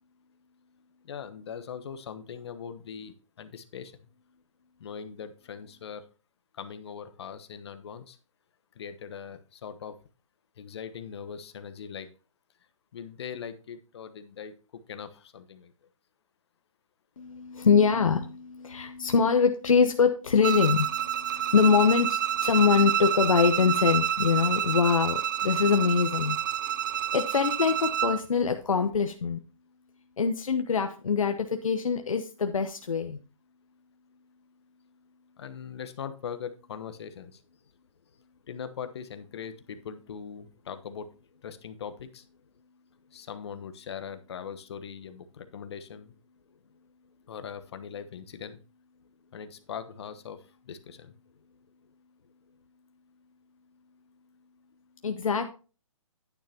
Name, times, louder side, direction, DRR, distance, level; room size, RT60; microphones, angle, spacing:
voice 1, 1.0-4.1 4.8-6.1 6.5-8.2 8.7-10.0 10.6-12.1 12.9-15.7 35.4-37.4 38.5-41.1 41.4-42.2 43.1-46.1 47.3-48.6 49.3-51.1, left 7 dB, 50° left, 10 dB, 1.1 m, -41 dB
voice 2, 17.2-26.4 26.9-29.4 30.2-33.2 55.0-55.5, left 6 dB, 75° left, 6 dB, 0.9 m, -24 dB
Bowed string instrument, 20.4-28.2, right 10 dB, 35° right, 0.4 m, -28 dB
10.0 x 9.5 x 2.9 m, 0.34 s
hypercardioid pair, 145°, 17 cm